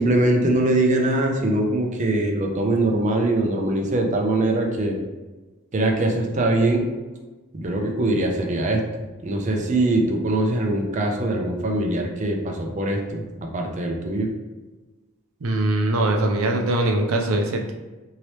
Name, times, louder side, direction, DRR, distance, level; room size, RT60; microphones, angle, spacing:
voice 1, 0.0-5.0 5.7-6.9 7.5-14.3, right 2 dB, 35° right, 1 dB, 0.4 m, -22 dB
voice 2, 15.4-17.7, right 1 dB, 85° right, 2 dB, 0.5 m, -22 dB
2.9 x 2.8 x 3.1 m, 1.2 s
head